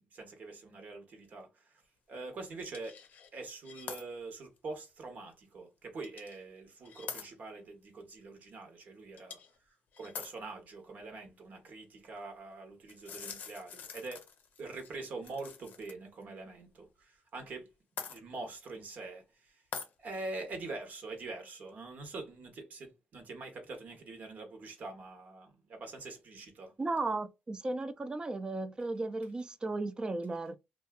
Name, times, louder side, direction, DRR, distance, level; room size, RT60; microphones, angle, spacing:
voice 1, 0.0-1.7 2.1-3.0 3.3-9.4 9.7-14.2 14.6-17.7 18.0-19.6 20.0-26.7, right 3 dB, 60° right, 1.0 m, -44 dB
sound 1, 2.6-3.3 3.6-4.0 4.6-4.7 6.0-6.4 6.8-7.2 9.2-9.6 9.9-10.3 12.9-15.9 16.2-16.3 18.0-18.2 19.7-19.9, left 6 dB, 65° left, 0.5 m, -44 dB
voice 2, 26.8-30.6, right 2 dB, 30° right, 0.4 m, -35 dB
2.6 x 2.3 x 2.2 m
supercardioid pair, 70°, 3 cm